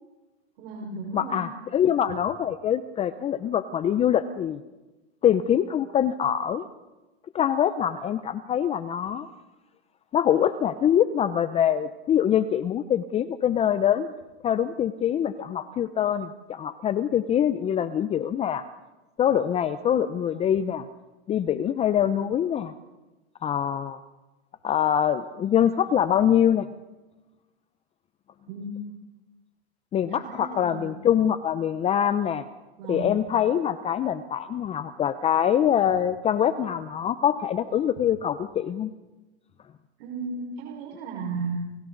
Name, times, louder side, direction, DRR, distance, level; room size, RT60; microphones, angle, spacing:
voice 1, 0.6-1.4 28.5-28.7 30.1-31.0 32.8-33.2 40.0-41.6, right 4 dB, 55° right, -1 dB, 5.0 m, -34 dB
voice 2, 1.1-4.6 5.2-6.6 7.3-9.3 10.1-14.1 14.4-18.6 19.2-20.9 21.3-22.7 23.4-24.0 24.6-26.7 29.9-32.4 32.9-38.9, left 9 dB, 20° left, 12 dB, 0.7 m, -24 dB
30.0 x 28.5 x 4.0 m, 1.1 s
hypercardioid pair, 130°, 34 cm